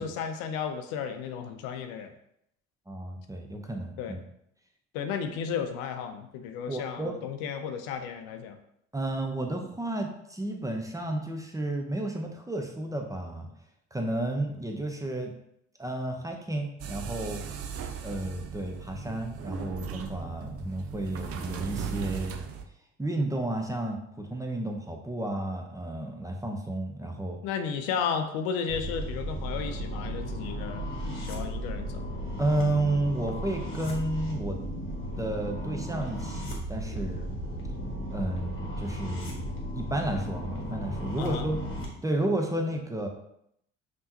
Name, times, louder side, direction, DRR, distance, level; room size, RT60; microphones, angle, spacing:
voice 1, 0.0-2.1 4.0-4.2 4.9-8.6 27.4-32.1 41.2-41.5, left 7 dB, 65° left, 6 dB, 0.6 m, -33 dB
voice 2, 2.9-4.2 6.7-7.2 8.9-13.5 13.9-15.3 15.8-17.4 18.0-22.3 23.0-27.4 32.4-34.6 35.2-37.4 38.1-39.3 39.7-41.6 42.0-43.1, right 1 dB, 10° right, 3 dB, 0.8 m, -32 dB
sound 1, 16.8-22.6, right 7 dB, 40° right, 0.5 m, -37 dB
sound 2, 28.7-41.9, equal, 30° left, 1.5 m, -35 dB
5.4 x 3.0 x 2.8 m, 0.75 s
hypercardioid pair, 60°, 37 cm